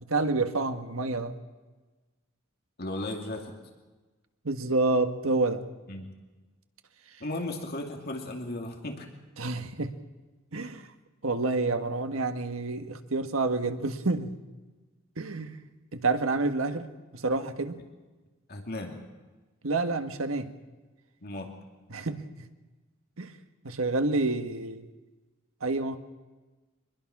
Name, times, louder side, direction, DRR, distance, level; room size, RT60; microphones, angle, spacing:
voice 1, 0.1-1.4 4.4-5.7 9.4-9.9 10.5-10.9 11.2-14.3 15.2-15.6 15.9-17.8 19.6-20.5 21.9-22.5 23.2-23.3 23.6-24.9 25.6-26.0, right 3 dB, 80° right, 8 dB, 1.5 m, -28 dB
voice 2, 2.8-3.5 5.9-6.2 7.2-9.1 18.5-19.0 21.2-21.5, left 1 dB, 50° left, 2 dB, 2.6 m, -35 dB
24.5 x 21.0 x 6.1 m, 1.2 s
head